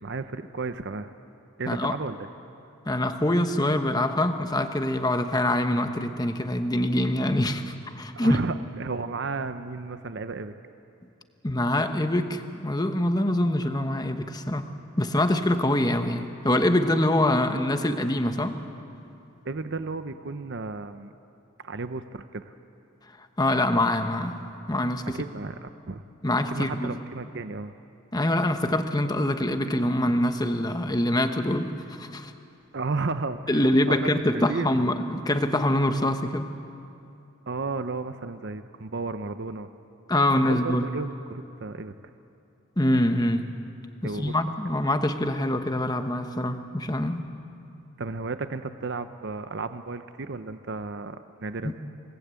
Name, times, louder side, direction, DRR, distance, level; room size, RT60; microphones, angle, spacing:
voice 1, 0.0-1.1 1.6-2.3 8.1-10.5 19.4-21.1 21.6-22.5 25.1-26.0 26.5-27.7 32.7-34.9 37.5-39.7 40.4-41.9 44.0-44.3 48.0-51.7, right 3 dB, 55° right, 10 dB, 0.7 m, -33 dB
voice 2, 1.7-2.0 2.9-8.4 11.4-14.7 15.0-18.6 23.4-25.2 26.2-26.9 28.1-32.3 33.5-36.5 40.1-40.9 42.8-43.7 44.0-47.3 51.6-51.7, left 1 dB, 20° left, 7 dB, 1.1 m, -25 dB
28.0 x 19.0 x 8.3 m, 2.7 s
head